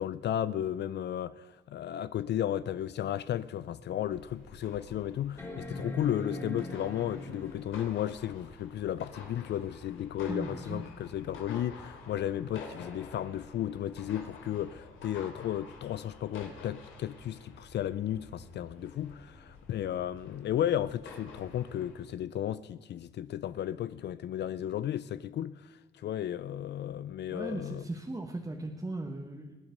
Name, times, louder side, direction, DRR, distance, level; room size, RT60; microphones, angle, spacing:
voice 1, 0.0-27.8, left 11 dB, 60° left, 0.5 m, -34 dB
sound 1, 3.2-3.3 3.9-4.0 5.4-7.9 9.6-9.7, left 1 dB, 15° left, 3.1 m, -40 dB
sound 2, 4.0-22.0, left 4 dB, 85° left, 2.9 m, -49 dB
voice 2, 10.3-10.8 27.3-29.6, right 2 dB, 15° right, 1.4 m, -38 dB
21.0 x 8.8 x 5.3 m
cardioid pair, 90°, 20 cm